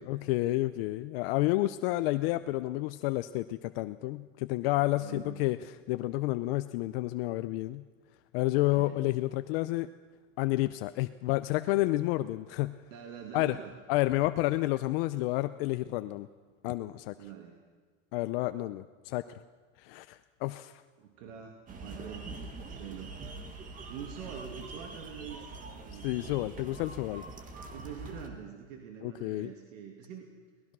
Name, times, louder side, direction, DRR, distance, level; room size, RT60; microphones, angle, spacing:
voice 1, 0.0-5.6 5.9-7.8 8.3-9.9 10.4-12.8 13.3-13.6 13.9-16.3 16.6-17.1 18.1-19.2 19.8-20.7 26.0-27.2 29.0-29.5, left 18 dB, 50° left, 12 dB, 0.6 m, -30 dB
voice 2, 5.0-5.6 8.8-9.0 12.9-13.7 17.1-17.6 21.0-22.3 22.7-23.2 23.9-26.7 27.7-30.3, right 8 dB, 90° right, 3 dB, 2.6 m, -45 dB
sound 1, 21.7-28.3, right 3 dB, 20° right, 1.7 m, -44 dB
23.0 x 19.0 x 6.1 m, 1.5 s
supercardioid pair, 170°, 37 cm